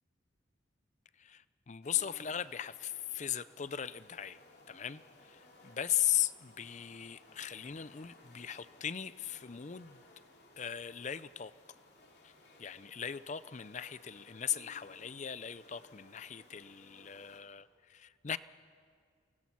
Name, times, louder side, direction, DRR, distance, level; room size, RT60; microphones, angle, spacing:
voice 1, 1.2-4.4 4.7-10.0 10.6-11.5 12.2-12.3 12.6-18.4, left 10 dB, 35° left, 16 dB, 0.5 m, -38 dB
sound 1, 1.8-17.4, left 2 dB, 55° left, 3.1 m, -60 dB
29.0 x 20.0 x 6.1 m, 2.1 s
head